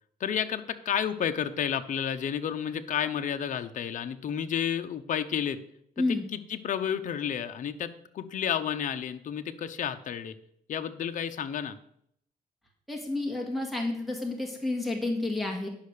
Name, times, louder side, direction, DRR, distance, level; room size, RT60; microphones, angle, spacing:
voice 1, 0.2-5.6 6.0-10.3 10.7-11.8, left 8 dB, 55° left, 8 dB, 0.8 m, -31 dB
voice 2, 12.9-15.7, left 2 dB, ahead, -1 dB, 1.9 m, -30 dB
10.5 x 5.7 x 6.6 m, 0.69 s
cardioid pair, 115°, 16 cm